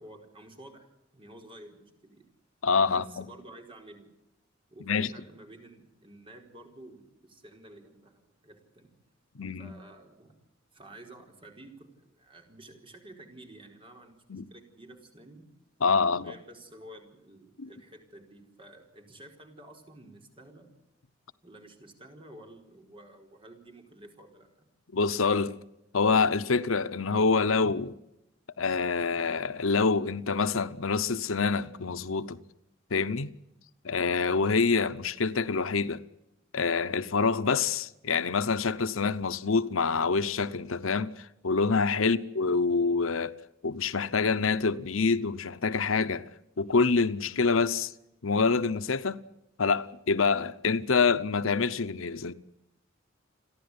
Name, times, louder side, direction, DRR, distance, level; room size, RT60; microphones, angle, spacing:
voice 1, 0.0-2.3 2.8-4.1 4.7-8.9 9.6-10.3 10.7-15.5 16.2-20.7 21.4-24.7 42.0-42.2, right 1 dB, 25° right, 4.6 m, -51 dB
voice 2, 2.6-3.2 4.9-5.1 9.3-9.7 14.3-14.5 15.8-16.3 17.6-17.7 24.9-25.6 25.9-27.9 28.6-32.4 32.9-33.3 33.8-36.0 36.5-43.3 43.6-46.3 46.6-47.9 48.2-49.2 49.6-52.3, left 4 dB, 80° left, 0.9 m, -26 dB
29.5 x 11.0 x 9.7 m
head